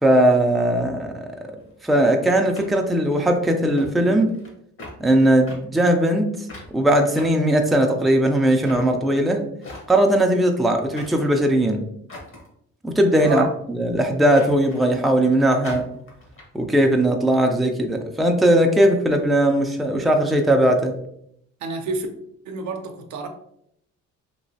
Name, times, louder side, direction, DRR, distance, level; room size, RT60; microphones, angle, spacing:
voice 1, 0.0-1.3 1.8-4.3 5.0-6.5 6.7-9.4 9.9-11.8 12.8-15.9 16.5-20.9, right 1 dB, ahead, 0.4 m, -19 dB
sound 1, 1.6-1.7 2.5-3.3 3.8-3.9 4.2-4.5 4.8-5.0 5.5-5.6 6.5-6.7 7.2-8.0 8.6-8.9 9.6-10.1 10.9-11.3 12.1-12.5 13.1-13.5 14.4-15.0 15.6-16.4, left 2 dB, 45° left, 1.1 m, -40 dB
voice 2, 21.6-22.1 22.5-23.3, right 3 dB, 70° right, 0.6 m, -28 dB
3.1 x 2.8 x 2.7 m
cardioid pair, 90°, 30 cm